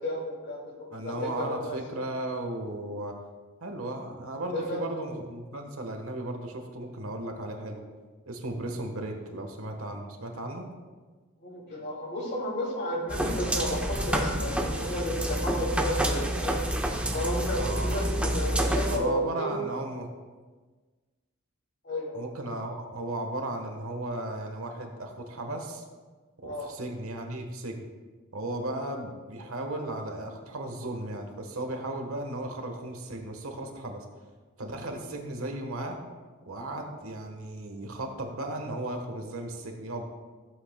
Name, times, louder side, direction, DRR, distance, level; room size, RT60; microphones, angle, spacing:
voice 1, 0.0-1.8 4.5-4.8 11.4-16.6 17.1-19.6 21.8-22.3 26.4-26.7, left 1 dB, 55° left, -2 dB, 2.5 m, -32 dB
voice 2, 0.9-3.2 3.6-7.8 8.3-10.7 17.5-18.4 18.9-20.1 22.1-25.8 26.4-27.8 28.3-34.0 34.6-36.0 36.5-40.0, right 1 dB, 85° right, 4 dB, 1.2 m, -35 dB
sound 1, 13.1-19.0, right 1 dB, 5° right, 0.7 m, -28 dB
14.5 x 7.8 x 2.2 m, 1.4 s
head